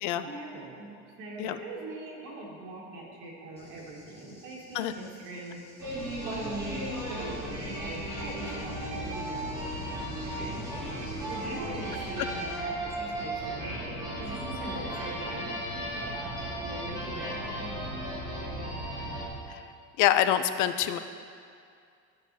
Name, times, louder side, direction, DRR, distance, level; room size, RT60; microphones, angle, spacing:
voice 1, 0.2-5.6 6.2-9.7 11.3-13.7 14.2-15.5 16.6-17.7, right 2 dB, 80° right, -3 dB, 1.8 m, -41 dB
Cricket / Thunder, 3.6-12.6, left 2 dB, 20° left, 1.3 m, -52 dB
sound 1, 5.8-19.3, right 1 dB, 10° right, 1.9 m, -35 dB
voice 2, 20.0-21.0, left 11 dB, 70° left, 11 dB, 0.5 m, -25 dB
12.5 x 6.3 x 2.7 m, 2.3 s
cardioid pair, 175°, 32 cm